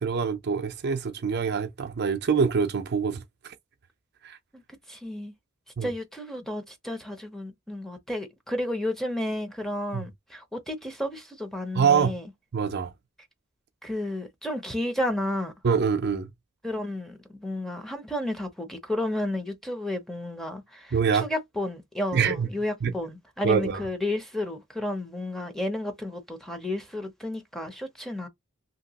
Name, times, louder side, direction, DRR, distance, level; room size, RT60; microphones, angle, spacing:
voice 1, 0.0-3.5 4.2-4.4 5.8-5.9 9.9-10.1 11.7-12.1 12.5-12.9 15.6-16.3 20.9-21.3 22.1-22.5 22.8-22.9 23.4-23.8, right 6 dB, 50° right, 0.5 m, -25 dB
voice 2, 4.9-5.3 5.8-12.3 13.8-15.5 16.6-21.0 21.2-28.3, left 1 dB, ahead, 0.7 m, -32 dB
2.9 x 2.7 x 2.8 m
head